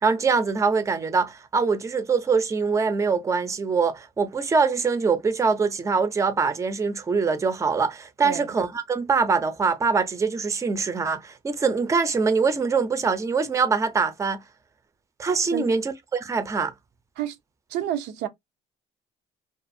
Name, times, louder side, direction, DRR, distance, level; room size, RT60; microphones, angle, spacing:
voice 1, 0.0-14.4 15.2-16.7, right 5 dB, 20° right, 0.5 m, -23 dB
voice 2, 17.7-18.3, right 10 dB, 85° right, 0.5 m, -29 dB
2.4 x 2.4 x 2.6 m
cardioid pair, 110°, 17 cm